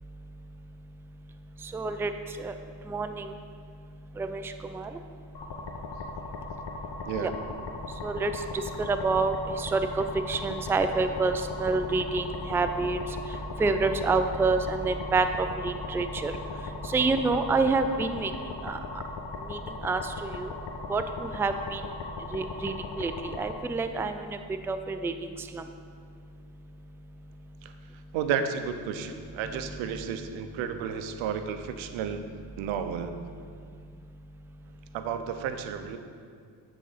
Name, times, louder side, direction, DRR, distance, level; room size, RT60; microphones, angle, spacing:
voice 1, 1.7-2.1 2.4-2.5 2.9-3.2 4.2-4.4 4.7-4.9 7.2-7.3 8.0-8.3 8.8-13.0 13.6-16.3 16.9-18.3 18.6-18.8 19.5-20.5 20.9-21.8 22.3-23.1 23.4-24.1 24.7-25.1 25.5-25.6, right 3 dB, 5° right, 8 dB, 0.3 m, -27 dB
sound 1, 5.3-23.5, left 3 dB, 60° left, 1.1 m, -38 dB
voice 2, 28.1-32.3 32.6-33.1 34.9-36.0, right 7 dB, 85° right, 8 dB, 0.7 m, -32 dB
9.2 x 4.0 x 5.6 m, 2.2 s
supercardioid pair, 60°, 46 cm